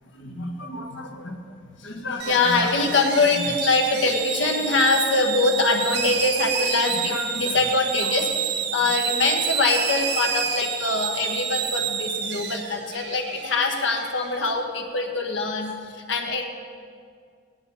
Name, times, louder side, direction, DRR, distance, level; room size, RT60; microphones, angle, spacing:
voice 1, 0.2-1.4 1.8-16.4, left 3 dB, 80° left, 2 dB, 1.5 m, -24 dB
sound 1, 2.2-14.4, right 7 dB, 60° right, 0.9 m, -29 dB
17.5 x 9.6 x 4.2 m, 2.1 s
head